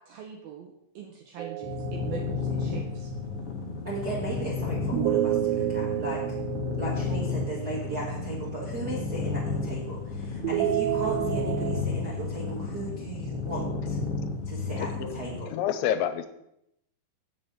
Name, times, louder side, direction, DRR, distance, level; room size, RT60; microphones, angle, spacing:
voice 1, 0.0-3.1, right 7 dB, 75° right, 2 dB, 2.4 m, -42 dB
sound 1, 1.4-2.9 4.9-8.1 10.4-11.8, right 14 dB, 90° right, 3.0 m, -30 dB
sound 2, 1.6-15.4, left 4 dB, 70° left, 1.4 m, -32 dB
voice 2, 3.8-6.2 6.8-14.0 14.4-15.5, right 2 dB, 45° right, -5 dB, 1.3 m, -36 dB
voice 3, 15.5-16.3, left 10 dB, 90° left, 10 dB, 3.0 m, -27 dB
7.6 x 7.0 x 8.0 m, 0.80 s
omnidirectional pair, 5.2 m